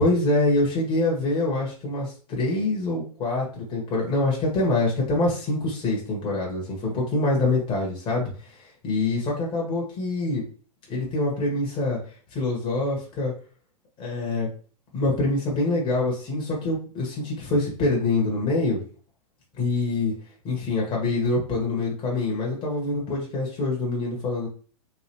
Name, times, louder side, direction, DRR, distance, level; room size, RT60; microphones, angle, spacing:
voice 1, 0.0-8.5 8.8-10.4 10.9-12.0 12.3-13.3 14.0-14.5 14.9-18.8 19.6-20.1 20.4-24.5, left 2 dB, 25° left, -2 dB, 1.5 m, -25 dB
3.4 x 3.3 x 2.9 m, 0.40 s
figure-of-eight pair, 105°, 20 cm